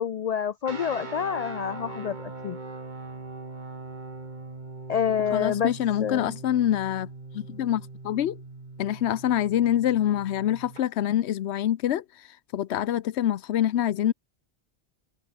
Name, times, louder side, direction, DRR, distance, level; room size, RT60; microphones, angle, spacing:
voice 1, 0.0-2.6 4.9-5.7 6.0-6.4, left 8 dB, 55° left, 0.4 m, -28 dB
sound 1, 0.6-10.8, right 3 dB, 45° right, 2.2 m, -41 dB
voice 2, 5.3-7.1 7.3-8.4 8.8-14.1, left 11 dB, 85° left, 1.0 m, -26 dB
omnidirectional pair, 1.1 m